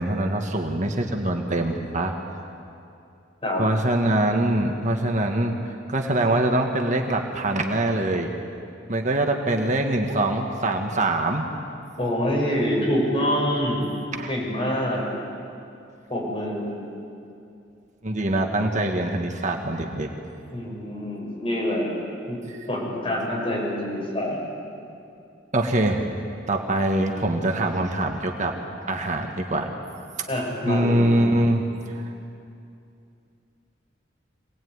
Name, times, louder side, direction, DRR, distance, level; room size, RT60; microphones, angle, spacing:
voice 1, 0.0-2.1 3.6-5.5 5.9-8.3 8.9-11.5 14.1-14.3 18.0-20.1 22.5-22.7 25.5-26.0 26.5-28.5 28.8-29.7 30.6-32.1, right 1 dB, 40° right, 3 dB, 1.7 m, -24 dB
voice 2, 12.0-13.9 14.3-15.1 16.1-16.7 20.5-21.9 22.3-24.4 30.3-31.0, equal, 30° left, -3 dB, 7.1 m, -26 dB
25.5 x 19.0 x 9.6 m, 2.6 s
head